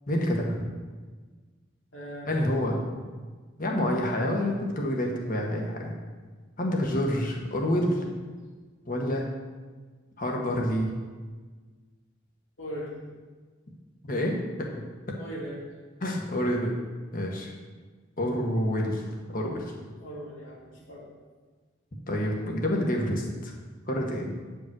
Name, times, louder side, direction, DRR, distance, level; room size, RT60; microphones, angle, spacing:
voice 1, 0.1-0.7 2.3-2.8 3.6-5.9 6.6-8.0 8.8-9.2 10.2-10.9 14.1-14.8 16.0-16.8 17.1-17.5 18.2-19.0 19.3-19.7 22.1-23.5 23.9-24.3, equal, 45° left, 0 dB, 1.4 m, -28 dB
voice 2, 1.9-3.0 12.6-13.2 15.2-15.7 20.0-21.1, equal, 70° left, -5 dB, 2.7 m, -40 dB
9.2 x 5.3 x 6.2 m, 1.4 s
head